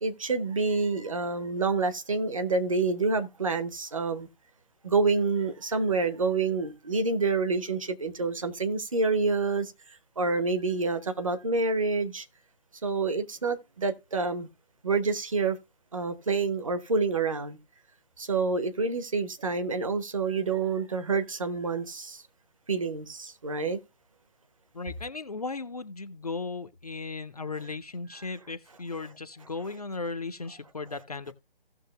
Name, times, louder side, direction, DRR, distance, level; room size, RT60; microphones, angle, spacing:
voice 1, 0.0-4.3 4.8-9.7 10.2-12.3 12.8-14.5 14.8-15.6 15.9-17.6 18.2-22.2 22.7-23.8, right 4 dB, 35° right, 0.7 m, -28 dB
voice 2, 24.7-31.3, left 3 dB, 40° left, 0.4 m, -36 dB
16.5 x 6.2 x 2.2 m
figure-of-eight pair, 150°, 29 cm